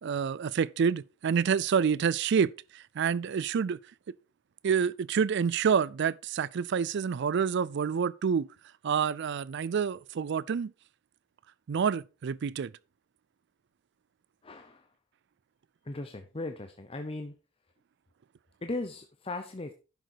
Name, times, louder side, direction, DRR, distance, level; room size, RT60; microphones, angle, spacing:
voice 1, 0.0-3.8 4.6-8.5 8.8-10.7 11.7-12.7, right 6 dB, 60° right, 0.4 m, -28 dB
voice 2, 14.4-14.9 15.8-17.3 18.6-19.7, left 2 dB, 30° left, 0.8 m, -37 dB
10.5 x 6.6 x 4.6 m
head